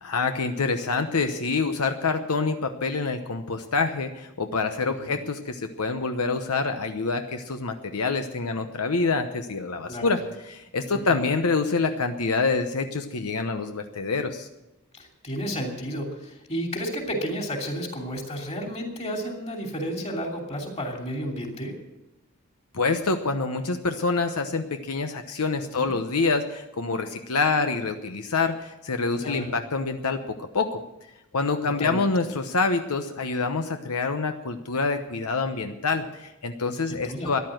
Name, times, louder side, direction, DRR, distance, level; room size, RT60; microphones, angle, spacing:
voice 1, 0.0-14.5 22.7-30.8 31.3-37.4, left 4 dB, 80° left, 7 dB, 0.9 m, -26 dB
voice 2, 4.9-5.2 9.9-10.1 11.1-11.2 14.9-21.8 25.7-25.9 29.2-29.6 31.6-32.1 36.8-37.3, equal, 30° left, 2 dB, 2.9 m, -32 dB
13.5 x 11.0 x 7.8 m, 0.94 s
head